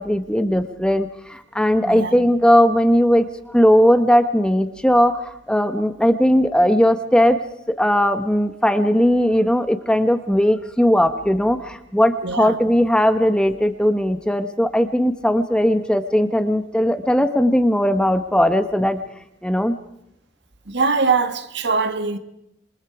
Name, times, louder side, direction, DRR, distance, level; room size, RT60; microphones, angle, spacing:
voice 1, 0.0-7.4 7.8-19.0 19.4-19.7, equal, 5° left, 1.2 m, -18 dB
voice 2, 1.8-2.2 12.2-12.6 20.7-22.2, right 4 dB, 60° right, 1.8 m, -22 dB
27.5 x 23.0 x 4.9 m
head